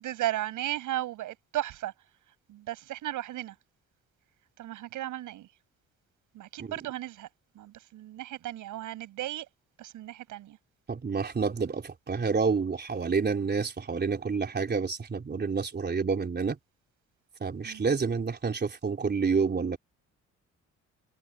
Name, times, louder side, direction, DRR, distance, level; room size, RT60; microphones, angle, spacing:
voice 1, 0.0-1.9 2.5-3.5 4.6-5.5 6.3-7.3 7.5-9.5 9.8-10.6 17.6-17.9, right 14 dB, 85° right, 7.6 m, -35 dB
voice 2, 10.9-16.6 17.4-19.8, right 5 dB, 35° right, 3.8 m, -29 dB
cardioid pair, 90°, 30 cm